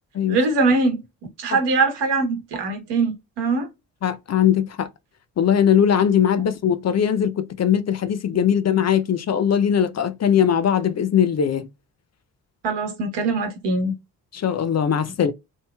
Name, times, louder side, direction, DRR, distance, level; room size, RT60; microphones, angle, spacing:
voice 1, 0.3-1.0 1.4-3.7 12.6-13.9, right 3 dB, 75° right, 1.2 m, -22 dB
voice 2, 4.0-4.9 5.4-11.7 14.3-15.3, left 8 dB, 40° left, 0.5 m, -20 dB
3.0 x 2.6 x 2.2 m
hypercardioid pair, 45°, 42 cm